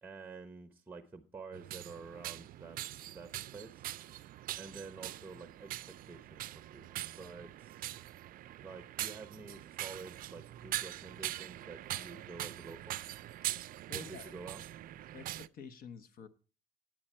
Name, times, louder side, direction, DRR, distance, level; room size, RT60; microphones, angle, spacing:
voice 1, 0.0-3.9 4.6-7.9 8.6-13.0 14.1-14.6, right 4 dB, 10° right, 8 dB, 0.9 m, -49 dB
sound 1, 1.5-15.5, right 14 dB, 55° right, 0.4 m, -43 dB
voice 2, 13.9-14.3 15.1-16.3, left 5 dB, 60° left, 10 dB, 0.9 m, -49 dB
9.1 x 8.7 x 4.3 m, 0.36 s
cardioid pair, 110°, 17 cm